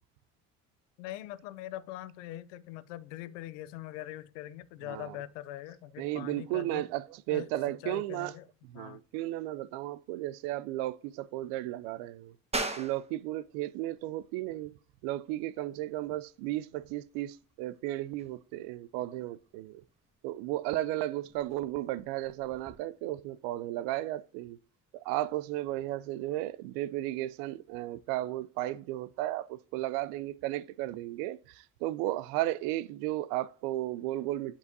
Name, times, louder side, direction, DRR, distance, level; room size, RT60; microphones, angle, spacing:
voice 1, 1.0-6.9 7.3-8.5 8.7-9.0, left 14 dB, 90° left, 0.5 m, -42 dB
voice 2, 6.0-8.3 8.6-12.4 12.8-14.7 15.0-19.8 20.2-24.6 24.9-34.6, right 15 dB, 80° right, 0.5 m, -34 dB
sound 1, 12.5-22.8, right 2 dB, 15° right, 1.3 m, -44 dB
7.9 x 5.5 x 2.6 m
supercardioid pair, 70°, 35 cm